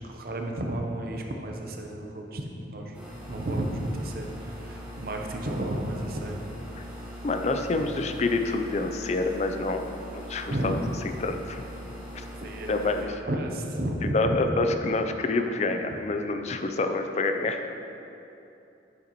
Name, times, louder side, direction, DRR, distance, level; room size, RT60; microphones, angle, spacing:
voice 1, 0.0-3.0 3.3-6.4 6.9-7.1 7.7-8.0 10.5-10.7 12.4-12.8 13.0-14.4 15.9-16.0, right 1 dB, 50° right, 2 dB, 0.7 m, -32 dB
sound 1, 2.9-13.1, equal, 10° right, 1.0 m, -41 dB
voice 2, 7.2-11.6 12.1-12.2 12.7-13.2 14.1-17.7, left 3 dB, 35° left, 6 dB, 0.4 m, -27 dB
7.9 x 6.9 x 3.0 m, 2.8 s
head